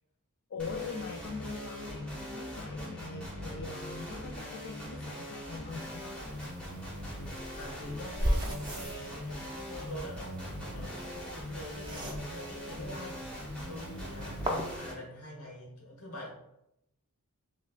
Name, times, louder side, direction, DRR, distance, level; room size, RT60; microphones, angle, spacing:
voice 1, 0.5-6.2 14.5-14.8, left 4 dB, 55° left, 2 dB, 0.4 m, -42 dB
sound 1, 0.6-14.9, equal, 5° left, 0.9 m, -41 dB
sound 2, 5.7-14.8, equal, 20° right, 0.5 m, -38 dB
voice 2, 7.5-13.3 13.7-16.3, equal, 85° left, -2 dB, 1.2 m, -45 dB
6.2 x 2.2 x 2.4 m, 0.85 s
head